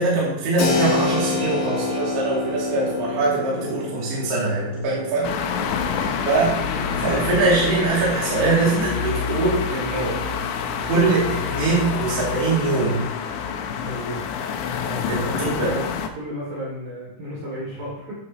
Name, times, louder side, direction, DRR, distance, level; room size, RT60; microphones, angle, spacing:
voice 1, 0.0-5.4 6.2-10.2 10.8-13.0 15.1-15.7, right 3 dB, 65° right, -7 dB, 4.6 m, -22 dB
Keyboard (musical), 0.6-9.0, left 4 dB, 70° left, 3.9 m, -29 dB
sound 1, 5.2-16.1, left 7 dB, 90° left, 3.2 m, -27 dB
voice 2, 5.6-6.1 13.8-14.2 14.8-15.8 16.1-18.2, equal, 50° right, -5 dB, 3.9 m, -33 dB
14.0 x 11.0 x 3.0 m, 0.92 s
omnidirectional pair, 5.1 m